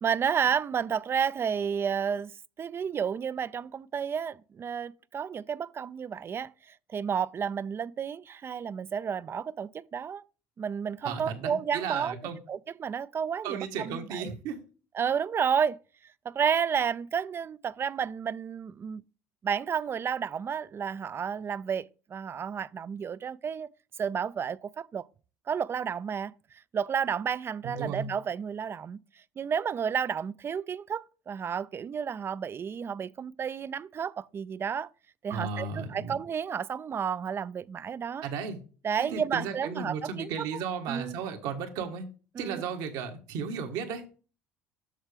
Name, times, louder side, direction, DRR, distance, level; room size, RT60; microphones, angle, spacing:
voice 1, 0.0-2.3 2.6-10.2 10.6-12.2 12.5-14.3 14.9-15.8 16.2-19.0 19.4-23.7 24.0-25.1 25.5-26.3 26.7-29.0 29.4-34.9 35.2-38.2 38.8-40.3 40.9-41.2 42.3-42.6, right 7 dB, 35° right, 0.4 m, -31 dB
voice 2, 11.0-12.4 13.4-14.6 27.6-28.1 35.3-36.2 38.2-38.6 39.0-42.1 42.4-44.0, right 6 dB, 70° right, 1.5 m, -35 dB
7.4 x 6.6 x 3.4 m
hypercardioid pair, 75°, 7 cm